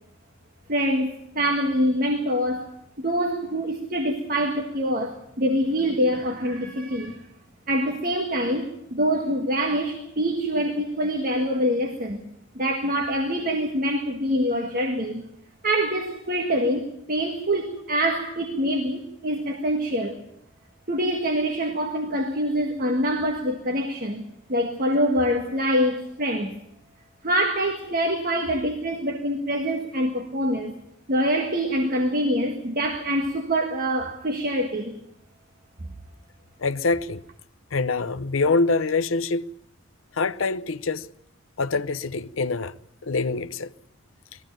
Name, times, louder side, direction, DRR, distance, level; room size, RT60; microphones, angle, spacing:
voice 1, 0.7-2.7 3.0-7.3 7.7-12.2 12.5-15.2 15.6-20.2 20.9-26.5 27.2-30.7 31.1-35.0, equal, 45° right, 1.7 m, -25 dB
voice 2, 36.6-37.2 37.7-39.5 40.1-41.1 41.6-42.7 43.0-43.7, left 3 dB, 85° left, 0.7 m, -25 dB
20.5 x 15.0 x 8.9 m
head